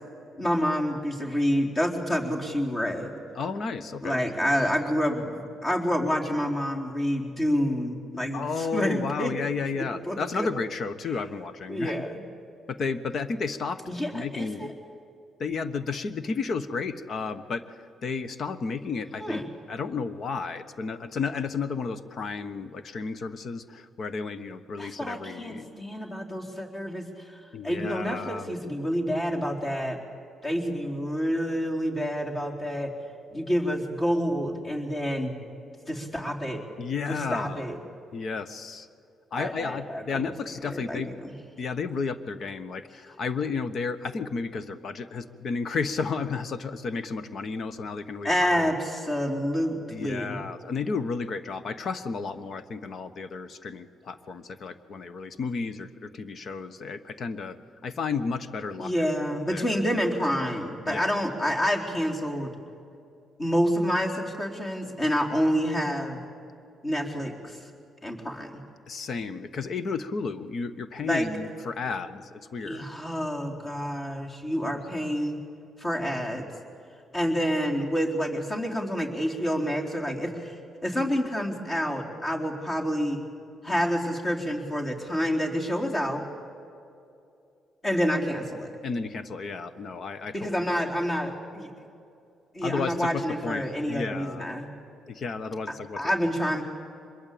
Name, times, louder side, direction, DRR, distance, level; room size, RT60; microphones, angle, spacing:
voice 1, 0.4-3.2 4.0-9.4 9.8-10.5 11.7-12.2 13.9-14.7 19.2-19.4 24.8-30.0 30.4-32.9 33.3-35.4 35.9-36.6 37.1-37.8 39.3-40.3 40.7-41.3 48.2-50.4 58.8-62.5 63.4-66.2 66.8-67.6 68.0-68.6 71.0-71.3 72.6-75.4 75.8-76.5 77.1-80.5 80.8-83.3 83.6-86.2 87.8-88.7 90.3-91.7 92.5-94.7 96.0-96.6, equal, 35° left, 0 dB, 4.1 m, -28 dB
voice 2, 3.3-4.2 8.3-12.1 12.7-13.8 14.1-14.7 15.4-17.6 18.0-19.4 19.7-25.7 27.5-28.6 36.8-37.7 38.1-38.9 39.3-41.1 41.6-48.3 48.6-48.7 49.9-57.6 57.8-58.9 59.5-59.6 60.9-61.0 68.9-72.9 88.8-90.5 92.6-94.4 95.1-96.2, left 4 dB, 55° left, 12 dB, 1.2 m, -32 dB
24.5 x 22.0 x 8.7 m, 2.6 s
cardioid pair, 90°, 0 cm